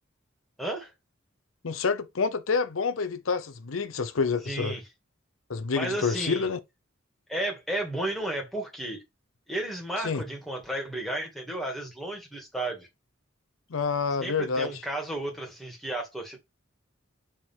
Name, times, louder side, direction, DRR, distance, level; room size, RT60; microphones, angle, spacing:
voice 1, 0.6-0.9 4.4-4.8 5.7-6.5 7.3-9.0 9.5-12.9 14.2-16.4, right 1 dB, ahead, 1.9 m, -33 dB
voice 2, 1.6-4.8 5.5-6.6 10.0-10.2 13.7-14.8, left 5 dB, 90° left, 0.7 m, -28 dB
6.4 x 3.8 x 4.5 m
head